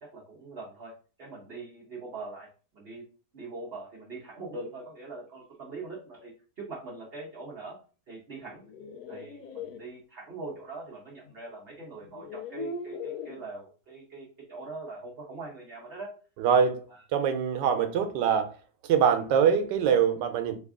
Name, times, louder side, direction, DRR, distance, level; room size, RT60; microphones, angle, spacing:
voice 1, 0.0-2.5 2.7-3.0 3.3-7.8 8.1-8.6 9.1-16.1, right 3 dB, 45° right, 0.9 m, -42 dB
sound 1, 8.5-9.8 11.3-11.4 12.0-13.4, left 4 dB, 70° left, 1.0 m, -39 dB
voice 2, 16.4-16.8 17.1-18.6 18.8-20.6, right 7 dB, 85° right, 1.2 m, -24 dB
3.3 x 2.3 x 3.5 m
omnidirectional pair, 1.8 m